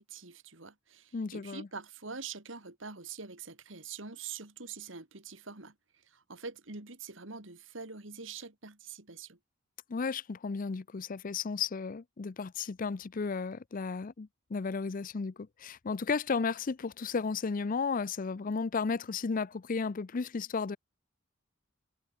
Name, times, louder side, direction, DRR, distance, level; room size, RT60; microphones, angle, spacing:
voice 1, 0.0-5.7 6.0-9.4, right 5 dB, 75° right, 3.0 m, -45 dB
voice 2, 1.1-1.7 9.9-20.8, left 5 dB, 45° left, 0.5 m, -34 dB
head